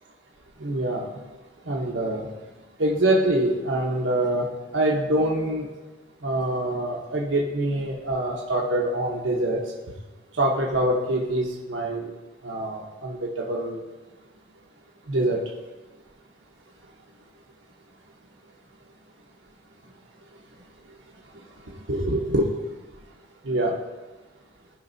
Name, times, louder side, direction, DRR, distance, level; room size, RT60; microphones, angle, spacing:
voice 1, 0.6-1.1 1.7-2.3 2.8-4.5 4.7-5.6 6.2-9.6 10.4-12.1 12.4-13.8 15.1-15.4 21.9-22.5 23.4-23.7, right 1 dB, 85° right, -2 dB, 1.1 m, -25 dB
15.5 x 5.3 x 2.7 m, 1.2 s
head